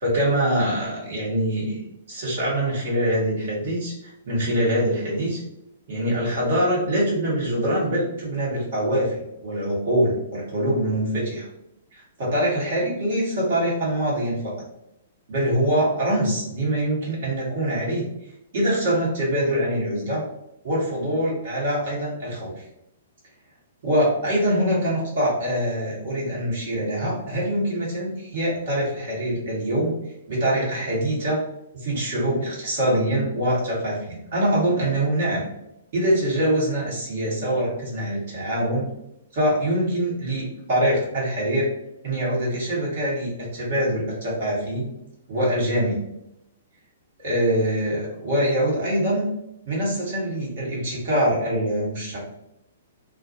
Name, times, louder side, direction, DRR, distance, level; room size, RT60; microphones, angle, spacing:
voice 1, 0.0-1.8 2.1-5.4 5.9-11.5 11.9-14.5 15.3-18.1 18.5-20.2 20.6-22.6 23.8-30.0 30.3-31.4 31.7-35.4 35.9-38.9 39.3-41.7 42.0-44.9 45.3-46.0 47.2-49.3 49.7-52.2, right 1 dB, 50° right, -5 dB, 1.1 m, -24 dB
2.4 x 2.3 x 2.7 m, 0.83 s
figure-of-eight pair, 115°, 0 cm